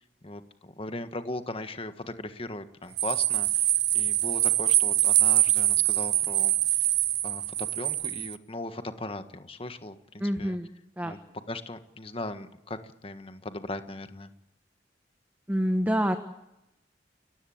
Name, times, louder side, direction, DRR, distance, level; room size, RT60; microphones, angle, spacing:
voice 1, 0.0-6.5 7.2-10.6 11.0-11.2 11.5-14.3, left 2 dB, 30° left, 9 dB, 1.5 m, -38 dB
sound 1, 3.0-8.3, right 15 dB, 65° right, 0.8 m, -24 dB
voice 2, 10.2-11.1 15.5-16.2, equal, 10° right, 7 dB, 1.2 m, -27 dB
30.0 x 15.5 x 8.7 m, 0.89 s
head